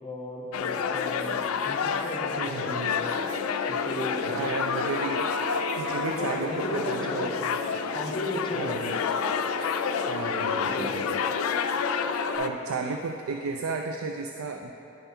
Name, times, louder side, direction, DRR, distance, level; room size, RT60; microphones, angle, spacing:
voice 1, 0.0-3.1 3.7-4.2 6.1-7.6 7.9-9.2 10.6-11.1, left 1 dB, 25° left, 0 dB, 0.9 m, -36 dB
sound 1, 0.5-12.5, left 6 dB, 85° left, 0.4 m, -29 dB
voice 2, 2.4-3.0 4.2-7.3 8.5-8.9 10.0-11.2 12.4-14.7, right 4 dB, 75° right, 4 dB, 0.4 m, -33 dB
sound 2, 2.7-12.4, left 1 dB, 40° right, 1.2 m, -37 dB
10.5 x 5.5 x 4.4 m, 2.9 s
head